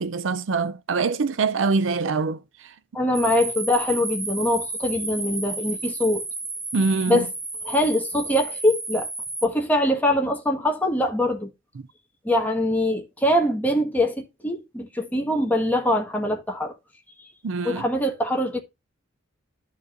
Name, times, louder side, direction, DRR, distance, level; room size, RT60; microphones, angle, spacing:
voice 1, 0.0-2.4 6.7-7.2 17.4-17.8, right 4 dB, 65° right, 0.5 m, -24 dB
voice 2, 2.9-6.2 7.1-7.3 7.6-9.1 9.4-11.5 12.2-16.7 17.2-17.3 17.6-18.6, left 1 dB, 10° left, 1.4 m, -23 dB
sound 1, 3.1-9.5, right 3 dB, 15° right, 1.1 m, -32 dB
13.0 x 4.7 x 2.5 m
head